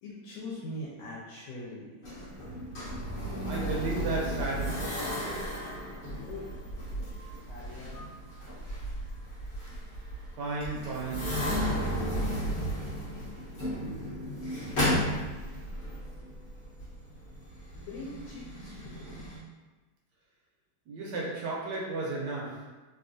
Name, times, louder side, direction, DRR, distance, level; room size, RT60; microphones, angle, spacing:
voice 1, 0.0-1.9 5.7-6.5 7.4-8.0 17.7-19.2, left 1 dB, 80° left, -6 dB, 1.4 m, -42 dB
sound 1, 2.0-19.4, equal, 45° left, 0.9 m, -34 dB
voice 2, 3.4-5.1 10.4-11.6 20.9-22.7, right 3 dB, 75° right, -3 dB, 1.0 m, -34 dB
3.3 x 2.3 x 2.5 m, 1.2 s
omnidirectional pair, 2.2 m